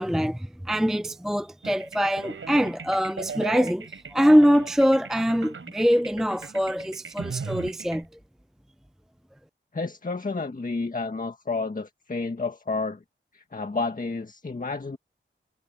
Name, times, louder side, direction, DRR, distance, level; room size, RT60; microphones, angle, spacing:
voice 1, 0.0-8.1, equal, ahead, 0.4 m, -23 dB
sound 1, 1.6-8.0, right 5 dB, 85° right, 4.2 m, -38 dB
voice 2, 9.7-13.0 13.3-15.0, left 3 dB, 40° left, 1.7 m, -30 dB
wide cardioid pair, 80°, 21 cm